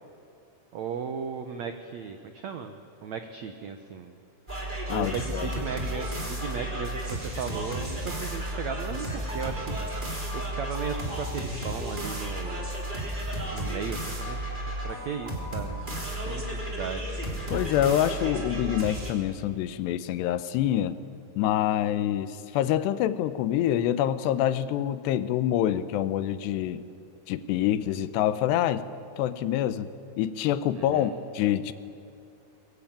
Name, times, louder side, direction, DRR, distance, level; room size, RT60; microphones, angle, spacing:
voice 1, 0.7-4.1 4.9-9.8 10.3-12.7 13.5-14.4 14.8-17.3 30.8-31.1, right 6 dB, 90° right, 7 dB, 1.5 m, -36 dB
sound 1, 4.5-19.1, right 1 dB, 15° right, 2.8 m, -33 dB
voice 2, 4.9-5.5 17.5-21.0 21.4-26.8 27.3-28.8 29.2-29.9 30.2-31.7, left 11 dB, 80° left, 13 dB, 3.0 m, -26 dB
23.0 x 22.0 x 8.8 m, 2.7 s
omnidirectional pair, 4.9 m